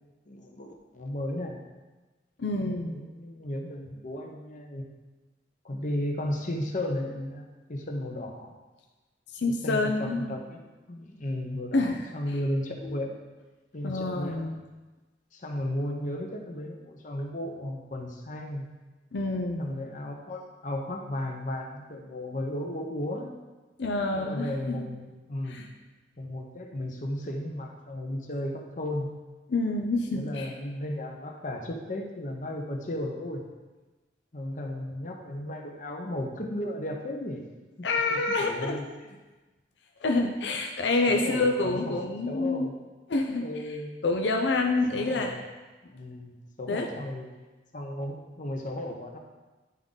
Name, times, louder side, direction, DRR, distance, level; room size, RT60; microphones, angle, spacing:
voice 1, 0.3-1.6 2.6-4.9 5.6-8.5 9.5-10.6 10.9-13.1 13.7-14.4 15.3-18.7 19.6-23.3 24.2-25.6 26.2-29.1 30.1-33.4 34.3-37.5 37.8-38.9 41.1-42.8 43.4-43.9 44.9-45.4 45.8-47.3 47.7-49.2, left 1 dB, 45° left, 2 dB, 0.9 m, -34 dB
voice 2, 2.4-3.0 9.3-10.3 11.7-12.0 12.8-13.0 13.8-14.6 19.1-19.6 23.8-24.8 25.5-25.7 29.5-30.5 37.8-38.8 40.0-42.7 43.1-43.5 44.0-45.3 46.7-46.9, left 2 dB, 80° left, 2 dB, 0.6 m, -27 dB
10.5 x 3.7 x 3.9 m, 1.2 s
head